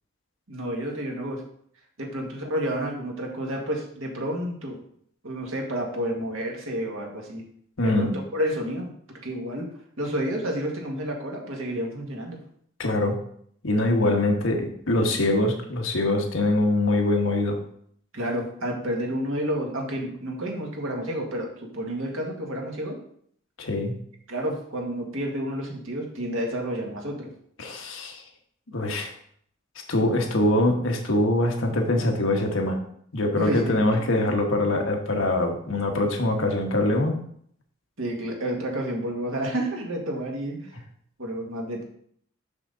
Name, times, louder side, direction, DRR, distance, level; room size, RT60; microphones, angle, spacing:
voice 1, 0.5-1.4 2.0-4.8 5.2-7.4 7.8-8.9 9.2-9.7 10.0-12.4 18.1-23.0 24.3-27.3 33.4-34.1 38.0-40.6 41.2-41.8, equal, 80° right, 0 dB, 1.7 m, -30 dB
voice 2, 7.8-8.1 12.8-13.1 13.6-17.6 23.6-23.9 27.6-28.2 28.7-29.1 29.9-32.8 33.1-37.2, left 1 dB, 75° left, 2 dB, 1.2 m, -23 dB
6.0 x 5.9 x 3.9 m, 0.65 s
head